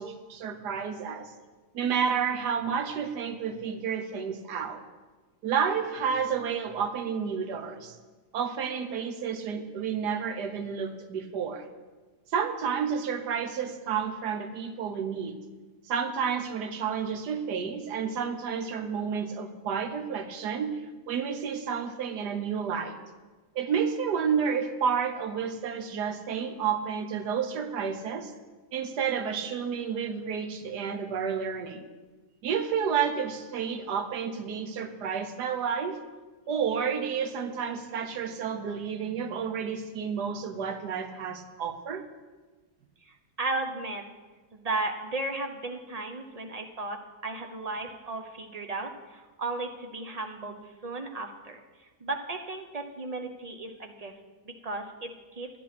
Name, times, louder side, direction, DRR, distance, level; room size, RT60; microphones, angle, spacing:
voice 1, 0.0-1.3 1.7-4.8 5.4-8.0 8.3-11.7 12.3-15.4 15.9-20.8 21.1-23.0 23.5-28.3 28.7-31.9 32.4-36.0 36.5-42.0, right 7 dB, 75° right, 7 dB, 1.5 m, -30 dB
voice 2, 43.1-44.0 44.5-51.6 52.0-54.1 54.4-55.5, right 2 dB, 35° right, 5 dB, 0.6 m, -35 dB
11.0 x 10.0 x 6.0 m, 1.3 s
omnidirectional pair, 1.8 m